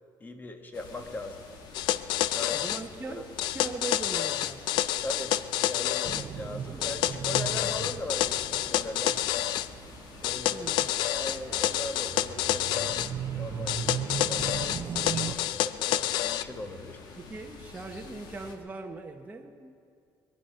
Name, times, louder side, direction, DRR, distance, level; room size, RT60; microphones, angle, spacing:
voice 1, 0.2-1.4 2.1-2.6 3.1-3.2 5.0-9.5 10.2-10.7 11.1-13.0 13.4-17.0, left 2 dB, 25° left, 6 dB, 1.4 m, -40 dB
sound 1, 0.7-18.6, left 4 dB, 70° left, 1.7 m, -48 dB
sound 2, 1.7-2.8 3.4-6.3 6.8-9.7 10.2-13.1 13.7-16.4, left 13 dB, 90° left, 0.4 m, -28 dB
voice 2, 2.5-4.8 10.5-10.9 17.2-19.8, right 3 dB, 20° right, 2 dB, 1.0 m, -40 dB
sound 3, 6.0-15.4, right 8 dB, 40° right, 0.6 m, -38 dB
22.0 x 10.5 x 5.7 m, 2.3 s
cardioid pair, 120°, 7 cm